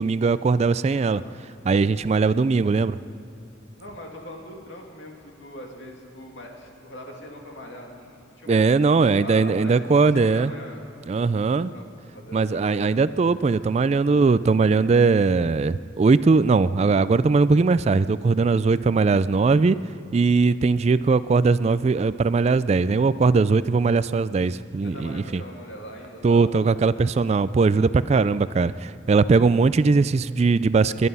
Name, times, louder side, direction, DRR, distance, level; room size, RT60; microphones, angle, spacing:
voice 1, 0.0-1.2 1.7-3.0 8.5-10.5 11.1-11.7 12.3-19.8 20.1-25.4 26.2-31.1, right 4 dB, 35° right, 16 dB, 0.3 m, -20 dB
voice 2, 1.0-1.4 3.8-8.6 9.0-9.9 10.1-10.8 11.5-11.9 12.1-13.0 24.8-26.9, equal, 75° left, 0 dB, 2.7 m, -41 dB
22.0 x 11.0 x 5.5 m, 2.7 s
head